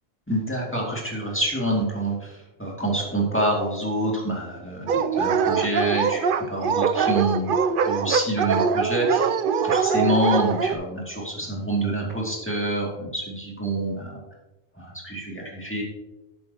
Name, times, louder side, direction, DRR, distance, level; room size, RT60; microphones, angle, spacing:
voice 1, 0.3-14.1 14.8-15.8, right 1 dB, 10° left, -3 dB, 2.4 m, -27 dB
Dog, 4.9-10.7, right 6 dB, 60° right, 0.7 m, -23 dB
12.0 x 8.7 x 2.9 m, 1.0 s
omnidirectional pair, 1.1 m